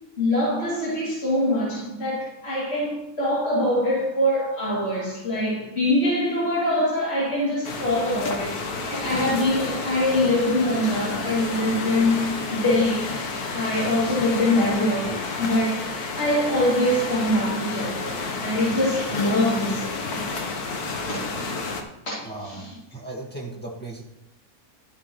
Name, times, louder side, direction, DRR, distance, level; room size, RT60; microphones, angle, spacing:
voice 1, 0.2-12.2 12.5-13.1 13.5-15.9 16.2-20.0 21.1-21.2 22.0-22.7, left 1 dB, 45° left, -9 dB, 3.4 m, -24 dB
sound 1, 7.6-21.8, left 3 dB, 80° left, 1.7 m, -30 dB
voice 2, 22.2-24.0, right 2 dB, 5° left, -4 dB, 1.7 m, -37 dB
13.0 x 7.7 x 3.2 m, 0.85 s
omnidirectional pair, 1.6 m